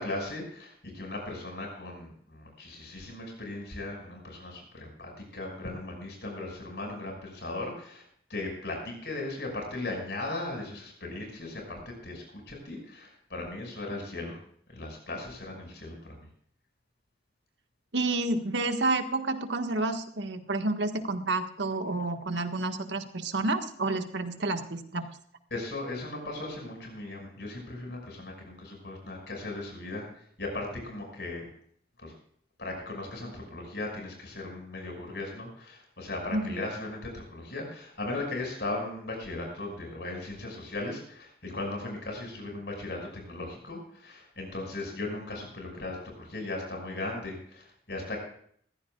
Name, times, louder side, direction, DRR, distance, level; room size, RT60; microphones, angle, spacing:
voice 1, 0.0-14.4 14.7-16.3 25.5-31.5 32.0-32.1 32.6-48.2, left 2 dB, 65° left, 1 dB, 5.9 m, -37 dB
voice 2, 17.9-25.1 36.3-36.6, right 2 dB, 75° right, 6 dB, 1.6 m, -30 dB
21.0 x 15.5 x 2.4 m, 0.62 s
head